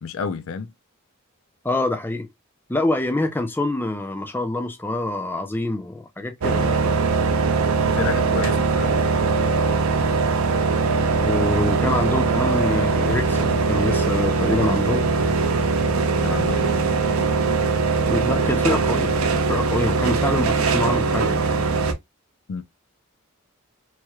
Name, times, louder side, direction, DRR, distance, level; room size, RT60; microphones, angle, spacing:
voice 1, 0.0-0.7 7.8-8.9 16.2-16.9 22.5-22.6, left 6 dB, 70° left, 0.4 m, -30 dB
voice 2, 1.6-2.3 2.7-6.7 11.2-15.1 18.1-21.4, left 1 dB, 10° left, 0.4 m, -25 dB
sound 1, 6.4-21.9, right 4 dB, 90° right, 0.6 m, -21 dB
3.0 x 3.0 x 2.3 m
head